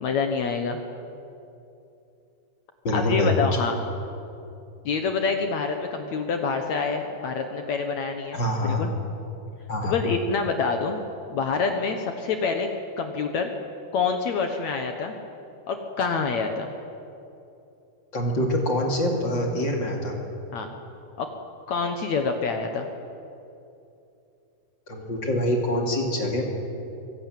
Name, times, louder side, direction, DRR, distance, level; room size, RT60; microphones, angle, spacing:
voice 1, 0.0-0.8 2.9-3.7 4.9-8.9 9.8-11.0 11.3-12.7 13.0-13.5 13.9-15.1 15.7-16.7 20.5-20.7 21.2-21.3 21.7-22.9, left 5 dB, 65° left, 5 dB, 1.8 m, -26 dB
voice 2, 2.8-3.3 7.2-7.3 8.3-8.8 9.7-9.9 18.1-20.2 24.9-26.5, equal, 35° left, 0 dB, 2.7 m, -25 dB
24.5 x 15.0 x 9.1 m, 2.8 s
omnidirectional pair, 4.6 m